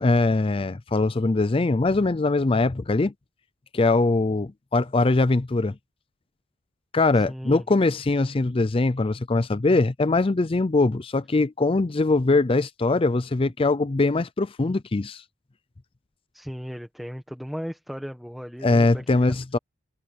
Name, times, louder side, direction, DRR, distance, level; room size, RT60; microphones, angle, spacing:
voice 1, 0.0-3.1 3.7-5.7 6.9-15.2 18.6-19.6, left 3 dB, 25° left, 0.5 m, -22 dB
voice 2, 7.1-7.6 16.3-19.2, equal, ahead, 1.4 m, -36 dB
head